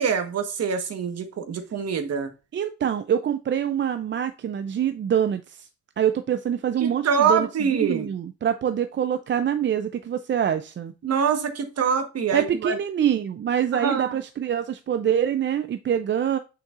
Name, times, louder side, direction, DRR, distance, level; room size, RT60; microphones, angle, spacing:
voice 1, 0.0-2.3 6.8-8.1 11.0-12.8 13.7-14.2, right 6 dB, 55° right, 1.3 m, -25 dB
voice 2, 2.5-5.7 6.0-10.9 12.3-16.4, right 9 dB, 40° right, 0.5 m, -25 dB
6.6 x 5.8 x 2.5 m
cardioid pair, 90°, 30 cm